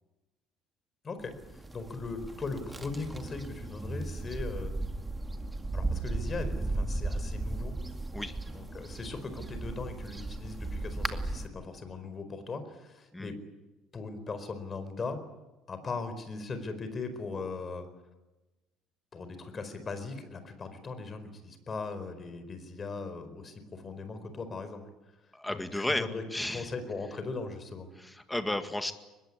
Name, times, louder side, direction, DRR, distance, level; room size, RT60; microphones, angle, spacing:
voice 1, 1.0-4.8 5.7-7.7 8.5-13.3 13.9-15.2 15.7-17.9 19.1-24.8 25.5-26.2 26.5-27.9, left 4 dB, 25° left, 10 dB, 4.5 m, -39 dB
sound 1, 1.3-11.5, right 2 dB, 10° right, 2.1 m, -36 dB
voice 2, 25.3-26.7 28.0-28.9, left 1 dB, 5° left, 8 dB, 2.0 m, -33 dB
24.0 x 21.5 x 9.8 m, 1.1 s
cardioid pair, 135°, 0 cm